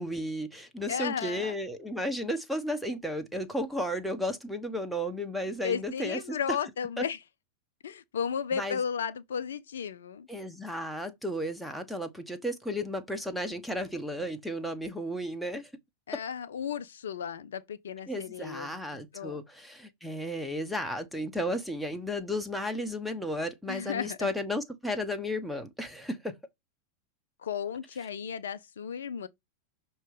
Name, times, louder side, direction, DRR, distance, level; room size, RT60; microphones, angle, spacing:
voice 1, 0.0-6.4 7.0-7.1 8.5-8.8 10.3-15.7 18.1-26.4, equal, ahead, 1.0 m, -34 dB
voice 2, 0.9-1.6 5.6-7.2 7.8-10.3 16.1-19.4 23.7-24.3 27.4-29.3, left 7 dB, 65° left, 0.5 m, -34 dB
6.5 x 3.0 x 5.2 m
figure-of-eight pair, 90°, 0 cm